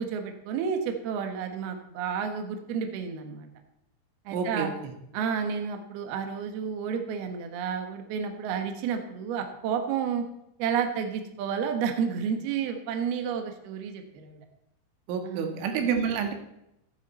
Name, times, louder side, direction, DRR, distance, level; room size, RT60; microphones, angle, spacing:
voice 1, 0.0-3.5 4.3-4.7 5.1-10.2 10.6-14.4 15.2-15.9, right 7 dB, 65° right, 5 dB, 3.0 m, -31 dB
voice 2, 4.3-4.9 15.1-16.3, right 6 dB, 85° right, 5 dB, 4.0 m, -29 dB
13.0 x 12.0 x 4.3 m, 0.82 s
omnidirectional pair, 5.4 m